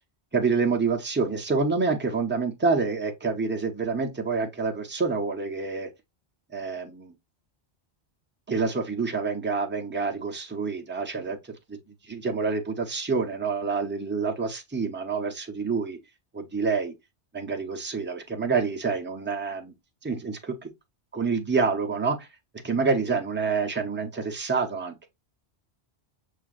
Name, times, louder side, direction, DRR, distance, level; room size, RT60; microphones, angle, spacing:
voice 1, 0.3-5.9 6.5-7.1 8.5-11.8 12.0-16.0 16.3-16.9 17.3-19.7 20.0-20.7 21.1-22.3 22.6-25.1, right 4 dB, 15° right, 0.6 m, -27 dB
6.1 x 2.4 x 2.4 m
omnidirectional pair, 1.1 m